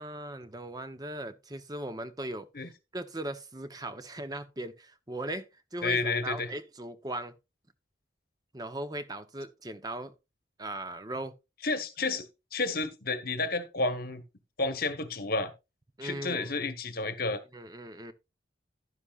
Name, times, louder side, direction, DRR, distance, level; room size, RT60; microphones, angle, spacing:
voice 1, 0.0-7.3 8.5-10.1 10.6-11.3 16.0-16.5 17.5-18.1, right 1 dB, 20° right, 0.8 m, -38 dB
voice 2, 5.8-6.5 11.6-14.2 14.6-15.5 16.0-17.4, left 3 dB, 50° left, 1.1 m, -31 dB
11.5 x 10.5 x 2.4 m
head